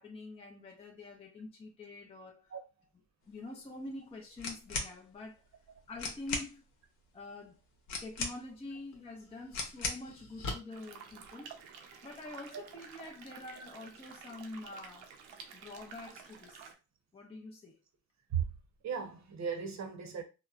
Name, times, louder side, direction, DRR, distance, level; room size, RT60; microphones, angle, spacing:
voice 1, 0.0-2.5 3.3-5.4 5.9-6.6 7.1-7.6 8.0-11.6 12.0-15.1 15.5-16.7 17.1-17.8, left 2 dB, 15° left, 0.5 m, -46 dB
sound 1, 4.4-4.9 5.7-5.8 6.0-6.5 7.9-8.6 9.5-10.1, left 4 dB, 80° left, 0.8 m, -37 dB
sound 2, 8.2-8.3 8.9-11.9, left 2 dB, 55° left, 1.1 m, -46 dB
sound 3, 10.7-16.7, right 6 dB, 80° right, 0.6 m, -51 dB
voice 2, 18.8-20.2, right 7 dB, 45° right, 0.8 m, -36 dB
2.8 x 2.0 x 2.3 m
supercardioid pair, 75°, 39 cm